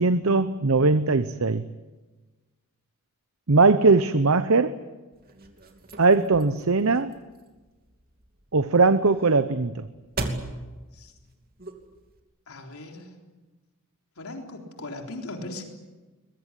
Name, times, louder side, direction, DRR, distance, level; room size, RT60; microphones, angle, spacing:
voice 1, 0.0-1.6 3.5-4.7 6.0-7.1 8.5-9.8, right 3 dB, 70° right, 12 dB, 0.9 m, -20 dB
sound 1, 5.1-12.2, right 2 dB, 45° right, 2.8 m, -39 dB
voice 2, 12.5-13.1 14.2-15.6, left 2 dB, 80° left, 2 dB, 3.8 m, -38 dB
22.0 x 21.5 x 9.9 m, 1.2 s
head